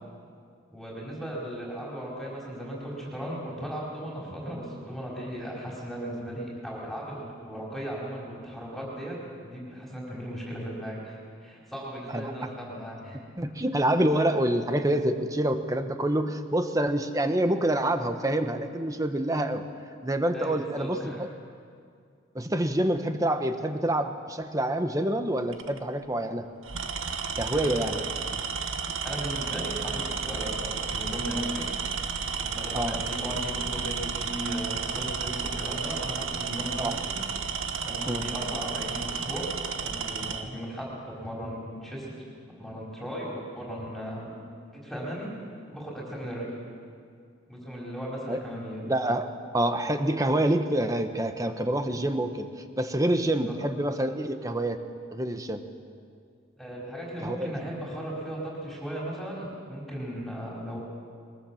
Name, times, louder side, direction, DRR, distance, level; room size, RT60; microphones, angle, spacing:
voice 1, 0.7-13.2 20.3-21.2 27.4-28.0 29.0-31.7 32.4-37.1 37.8-39.5 39.8-44.3 44.8-45.3 45.7-46.5 47.5-48.8 53.5-53.6 56.6-60.8, equal, ahead, -5 dB, 4.6 m, -37 dB
voice 2, 13.4-19.6 20.0-21.3 22.3-26.5 27.4-28.0 32.7-33.0 36.8-37.0 38.1-38.3 48.3-48.4 48.9-49.3 49.5-52.5 52.8-54.8 55.1-55.6 57.2-57.6, right 1 dB, 15° right, 7 dB, 1.1 m, -27 dB
Tools, 25.5-25.8 26.6-40.5, right 5 dB, 85° right, 1.4 m, -32 dB
22.5 x 22.5 x 7.2 m, 2.2 s
head